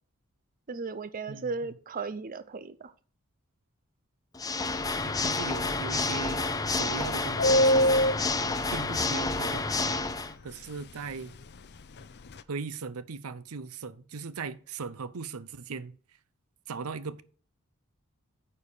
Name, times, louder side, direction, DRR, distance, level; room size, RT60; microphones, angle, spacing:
voice 1, 0.7-2.9, right 4 dB, 40° right, 0.6 m, -36 dB
Water / Mechanisms, 4.3-10.3, left 3 dB, 15° left, 0.7 m, -29 dB
voice 2, 5.0-6.4 6.7-8.2 8.7-10.0 10.4-11.3 12.5-15.9 16.7-17.2, right 5 dB, 80° right, 0.6 m, -39 dB
Subway metro underground, 7.4-9.6 9.8-9.9 10.2-10.4 10.7-11.1 11.4-12.4, equal, 50° left, 0.6 m, -25 dB
9.8 x 4.7 x 6.9 m
head